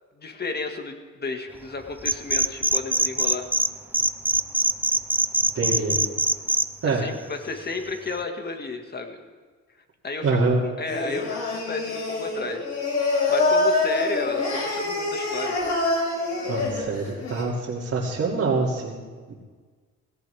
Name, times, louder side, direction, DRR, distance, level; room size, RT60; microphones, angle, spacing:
voice 1, 0.2-3.5 6.8-9.2 10.0-11.4 11.7-12.7 13.1-15.6, left 3 dB, 35° left, 4 dB, 2.0 m, -32 dB
sound 1, 2.0-3.7 3.9-6.7, right 2 dB, 5° right, 0.6 m, -22 dB
voice 2, 5.5-6.0 6.8-7.0 10.2-10.6 16.5-19.3, right 3 dB, 55° right, -7 dB, 2.7 m, -25 dB
Singing, 10.9-17.4, left 2 dB, 65° left, 5.0 m, -25 dB
17.0 x 17.0 x 3.5 m, 1.5 s
cardioid pair, 90°, 30 cm